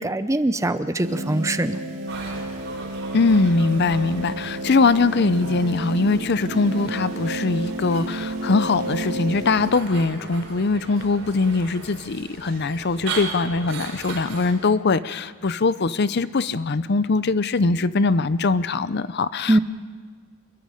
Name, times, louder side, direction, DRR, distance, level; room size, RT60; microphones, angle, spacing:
voice 1, 0.0-1.8 19.5-19.6, right 1 dB, 15° right, 11 dB, 0.6 m, -22 dB
sound 1, 1.0-9.7, right 1 dB, 80° right, 2.2 m, -31 dB
sound 2, 2.1-14.5, right 4 dB, 60° right, 4.6 m, -38 dB
voice 2, 3.1-19.6, left 3 dB, 50° left, 15 dB, 0.6 m, -22 dB
27.0 x 22.5 x 5.1 m, 1.5 s
head